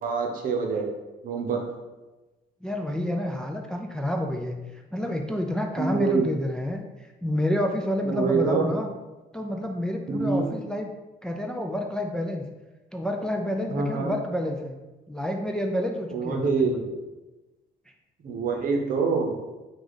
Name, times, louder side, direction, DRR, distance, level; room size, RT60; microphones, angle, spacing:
voice 1, 0.0-0.9 1.2-1.6 5.8-6.3 8.1-8.7 10.1-10.5 13.7-14.1 16.1-16.9 18.2-19.3, right 4 dB, 55° right, 3 dB, 0.8 m, -25 dB
voice 2, 2.6-6.8 7.2-8.9 9.3-10.9 11.2-12.4 12.9-14.8 15.1-16.8, left 1 dB, 5° left, 2 dB, 0.4 m, -29 dB
4.8 x 2.4 x 3.9 m, 1.1 s
cardioid pair, 110°, 17 cm